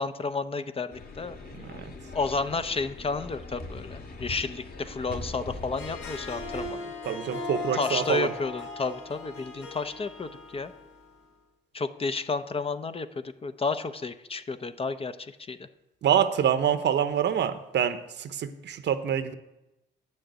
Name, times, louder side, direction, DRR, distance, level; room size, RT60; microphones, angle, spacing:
voice 1, 0.0-1.4 2.1-6.8 7.7-10.7 11.7-15.6, left 4 dB, 30° left, 11 dB, 0.7 m, -31 dB
sound 1, 0.9-6.7, left 3 dB, 50° left, 2.1 m, -41 dB
voice 2, 1.6-1.9 7.1-8.3 16.0-19.3, right 9 dB, 60° right, 11 dB, 0.9 m, -26 dB
Harp, 5.6-11.1, left 3 dB, 85° left, 3.8 m, -38 dB
9.9 x 6.5 x 8.2 m, 0.94 s
cardioid pair, 90°, 20 cm